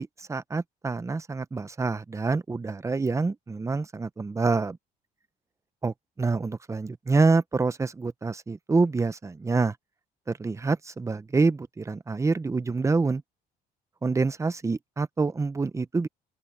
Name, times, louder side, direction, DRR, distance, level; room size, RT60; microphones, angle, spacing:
voice 1, 0.0-4.8 5.8-9.8 10.3-13.2 14.0-16.1, right 3 dB, 15° right, 0.8 m, -26 dB
open air
cardioid pair, 110°, 17 cm